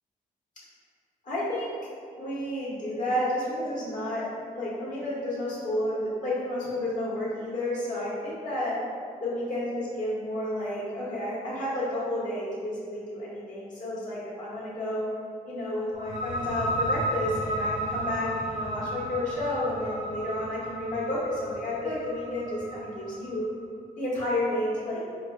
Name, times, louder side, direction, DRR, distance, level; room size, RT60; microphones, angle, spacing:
voice 1, 1.2-1.7 2.1-8.8 9.2-15.1 15.4-23.5 24.0-25.0, left 1 dB, 55° left, -8 dB, 1.3 m, -31 dB
sound 1, 15.9-23.4, right 1 dB, 55° right, 0.7 m, -33 dB
4.3 x 2.2 x 2.2 m, 2.3 s
cardioid pair, 60°, 15 cm